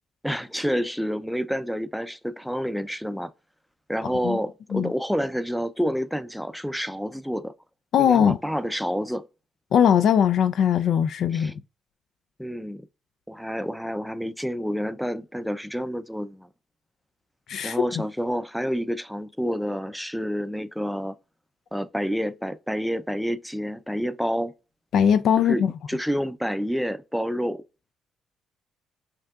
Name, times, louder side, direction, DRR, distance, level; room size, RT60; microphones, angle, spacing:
voice 1, 0.2-3.3 3.9-7.5 8.0-9.3 11.3-11.6 12.4-12.9 13.3-16.5 17.6-21.1 21.7-24.5 25.4-27.6, equal, ahead, 0.4 m, -28 dB
voice 2, 7.9-8.4 9.7-11.5 17.5-17.8 24.9-25.7, left 8 dB, 70° left, 0.3 m, -20 dB
5.7 x 2.7 x 2.3 m
cardioid pair, 90°, 0 cm